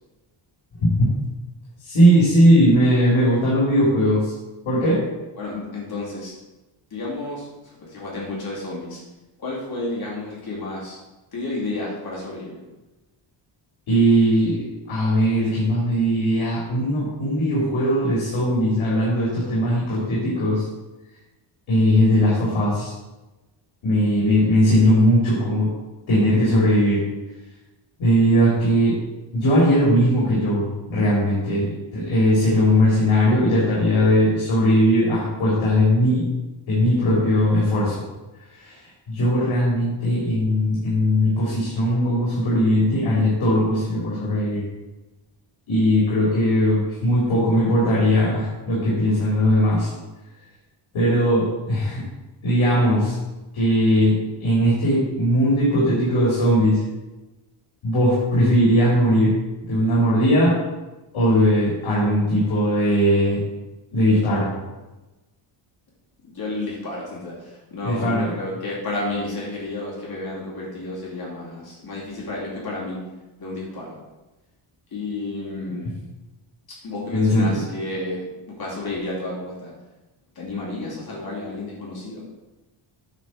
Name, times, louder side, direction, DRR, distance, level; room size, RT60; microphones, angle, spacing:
voice 1, 1.8-4.3 4.7-5.0 13.9-20.7 21.7-22.9 23.8-25.7 26.1-27.0 28.0-29.0 29.3-36.3 36.7-38.0 38.5-38.8 39.1-44.6 45.7-49.9 50.9-52.0 52.4-53.2 53.5-54.1 54.4-56.8 57.8-59.3 59.7-60.6 61.1-63.4 63.9-64.5 67.8-68.3 77.1-77.6, equal, 75° left, -7 dB, 3.4 m, -19 dB
voice 2, 5.4-6.4 6.9-9.0 9.4-11.0 11.3-12.5 66.2-73.0 73.4-74.0 74.9-75.9 76.8-79.7 80.3-82.2, left 2 dB, 45° left, -6 dB, 2.7 m, -31 dB
9.5 x 4.2 x 6.4 m, 1.1 s
wide cardioid pair, 150°, 49 cm